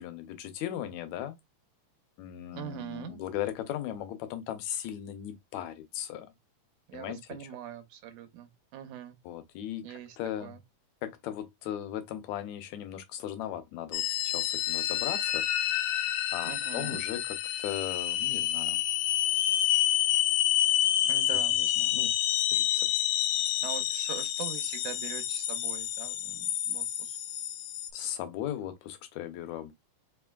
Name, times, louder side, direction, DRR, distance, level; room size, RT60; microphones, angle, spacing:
voice 1, 0.0-1.4 2.2-6.3 6.9-7.2 9.3-10.6 11.0-15.5 16.3-18.8 21.3-22.1 22.5-22.9 27.9-29.7, left 11 dB, 75° left, 1.9 m, -37 dB
voice 2, 2.5-3.2 6.9-9.2 9.8-10.6 16.4-17.0 21.1-21.5 23.6-27.2, right 11 dB, 80° right, 2.3 m, -42 dB
sound 1, 13.9-27.9, left 12 dB, 90° left, 2.1 m, -28 dB
5.0 x 3.1 x 2.3 m
omnidirectional pair, 3.5 m